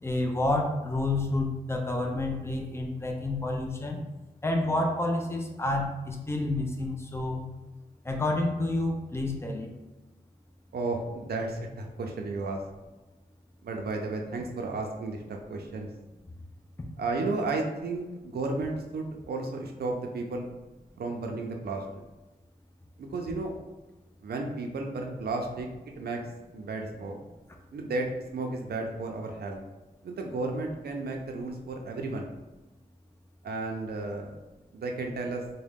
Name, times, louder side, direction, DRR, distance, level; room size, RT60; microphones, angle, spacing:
voice 1, 0.0-4.0 4.4-7.5 8.0-9.7, left 2 dB, 15° left, 2 dB, 0.5 m, -29 dB
voice 2, 10.7-12.6 13.6-15.9 17.0-20.5 21.0-21.8 23.0-23.5 24.2-25.7 26.0-26.2 26.5-27.2 27.7-29.6 30.0-32.3 33.4-34.4 34.7-35.4, right 3 dB, 85° right, 2 dB, 0.5 m, -33 dB
3.6 x 2.1 x 3.5 m, 1.1 s
wide cardioid pair, 100°, 16 cm